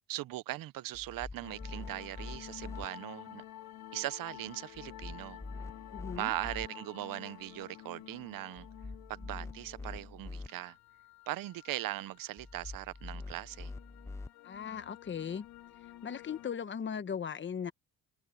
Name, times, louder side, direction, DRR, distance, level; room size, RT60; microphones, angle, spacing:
voice 1, 0.1-3.4 3.9-5.4 6.1-8.7 9.1-10.8 11.3-13.7, right 15 dB, 65° right, 0.8 m, -39 dB
sound 1, 0.9-2.9 4.7-6.7 8.6-10.5 12.4-14.3, left 3 dB, 10° left, 0.3 m, -45 dB
sound 2, 1.4-16.5, left 13 dB, 75° left, 3.7 m, -51 dB
voice 2, 5.9-6.3 14.4-15.4 16.0-17.7, left 7 dB, 30° left, 1.1 m, -38 dB
cardioid pair, 130°, 36 cm